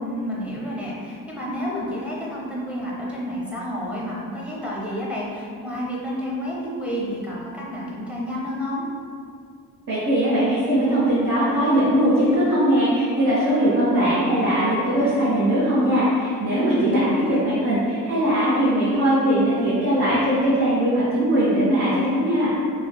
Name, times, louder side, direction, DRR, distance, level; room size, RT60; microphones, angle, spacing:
voice 1, 0.0-8.9 16.5-17.4, equal, 5° right, -5 dB, 0.7 m, -30 dB
voice 2, 9.9-22.5, equal, 60° right, -11 dB, 0.9 m, -20 dB
3.3 x 2.0 x 2.2 m, 2.3 s
cardioid pair, 65°, 36 cm